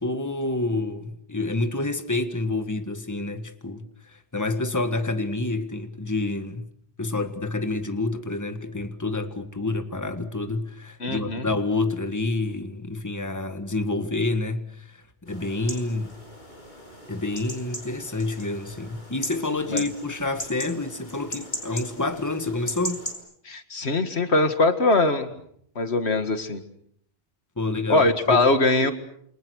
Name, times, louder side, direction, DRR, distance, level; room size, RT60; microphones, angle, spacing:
voice 1, 0.0-3.9 4.1-6.7 7.0-16.1 17.1-23.1 27.6-28.4, left 2 dB, 15° left, 1.7 m, -28 dB
voice 2, 11.0-11.5 19.7-19.8 23.5-25.3 25.8-26.6 27.9-28.9, left 2 dB, 90° left, 2.2 m, -21 dB
sound 1, 15.3-23.1, equal, 50° left, 6.8 m, -38 dB
28.5 x 26.0 x 6.5 m
omnidirectional pair, 1.1 m